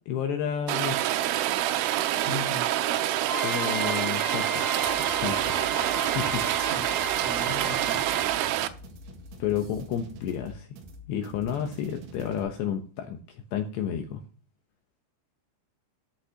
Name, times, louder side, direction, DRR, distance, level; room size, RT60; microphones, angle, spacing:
voice 1, 0.1-1.0 3.4-4.8 5.2-5.7 5.9-6.4 9.4-10.7 11.1-14.2, left 8 dB, 75° left, 5 dB, 2.7 m, -31 dB
Rain, 0.7-8.7, right 13 dB, 90° right, 3.3 m, -27 dB
voice 2, 2.2-2.9 6.6-6.8 7.2-8.1, left 2 dB, 30° right, 1 dB, 3.1 m, -37 dB
sound 1, 3.2-8.5, left 1 dB, 55° right, 6.6 m, -36 dB
sound 2, 4.8-12.4, equal, 70° right, 4.0 m, -45 dB
14.0 x 9.7 x 2.9 m, 0.40 s
omnidirectional pair, 5.7 m